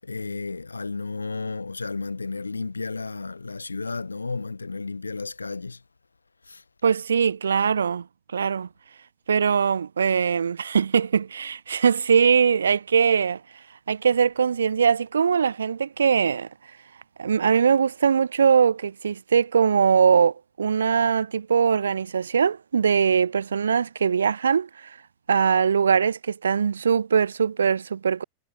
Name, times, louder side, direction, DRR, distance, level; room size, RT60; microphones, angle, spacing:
voice 1, 0.0-5.8 6.5-6.6, left 3 dB, 80° left, 2.1 m, -32 dB
voice 2, 6.8-8.1 8.3-8.7 9.3-13.4 13.9-16.5 17.2-24.7 25.3-28.2, right 6 dB, 70° right, 0.3 m, -21 dB
figure-of-eight pair, 90°, 0 cm